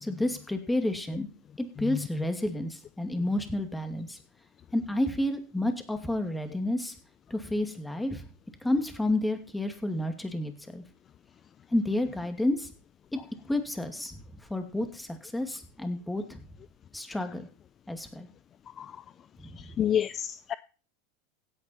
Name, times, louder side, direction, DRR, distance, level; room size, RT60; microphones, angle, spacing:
voice 1, 0.0-1.3 1.6-4.2 4.7-6.9 7.3-8.2 8.6-10.8 11.7-12.7 13.1-13.2 13.5-14.2 14.5-16.4 16.9-17.5 17.9-18.3 19.4-19.6, left 1 dB, 5° left, 2.4 m, -30 dB
voice 2, 19.6-20.6, left 9 dB, 35° left, 0.5 m, -29 dB
16.5 x 8.8 x 4.4 m
hypercardioid pair, 100°, 0 cm